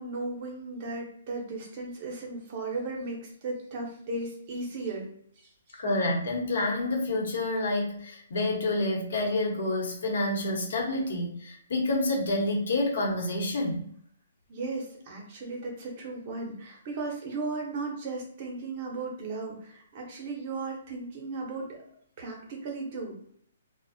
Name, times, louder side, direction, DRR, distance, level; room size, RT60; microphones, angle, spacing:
voice 1, 0.0-5.1 5.4-5.8 14.5-21.8 22.2-23.2, right 3 dB, 35° right, 0 dB, 0.6 m, -36 dB
voice 2, 5.8-13.8, left 2 dB, 70° left, 0 dB, 0.9 m, -28 dB
2.5 x 2.1 x 2.6 m, 0.64 s
hypercardioid pair, 170°, 0 cm